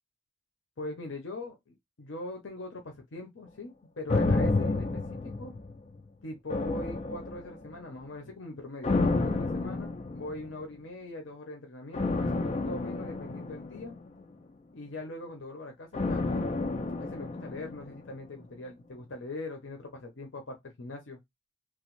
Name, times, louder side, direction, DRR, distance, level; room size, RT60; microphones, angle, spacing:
voice 1, 0.8-5.5 6.2-13.9 14.7-16.5 17.0-21.2, left 2 dB, 70° left, 0.7 m, -42 dB
sound 1, 4.1-6.0 6.5-7.8 8.8-10.5 11.9-14.3 15.9-18.1 18.4-18.5, left 3 dB, 35° left, 0.3 m, -30 dB
3.0 x 2.0 x 3.0 m
head